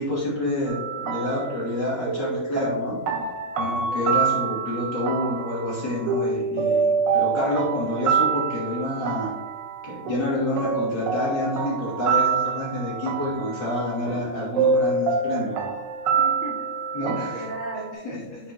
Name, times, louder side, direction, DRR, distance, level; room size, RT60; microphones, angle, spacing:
voice 1, 0.0-3.0 3.5-9.3 9.8-15.6 16.9-17.5 18.0-18.2 18.4-18.5, left 1 dB, 75° left, -7 dB, 3.4 m, -28 dB
sound 1, 0.7-17.9, right 5 dB, 80° right, 1.5 m, -26 dB
voice 2, 16.2-16.7 17.1-18.5, right 1 dB, 25° right, -7 dB, 2.0 m, -36 dB
9.0 x 5.4 x 2.9 m, 1.0 s
omnidirectional pair, 1.9 m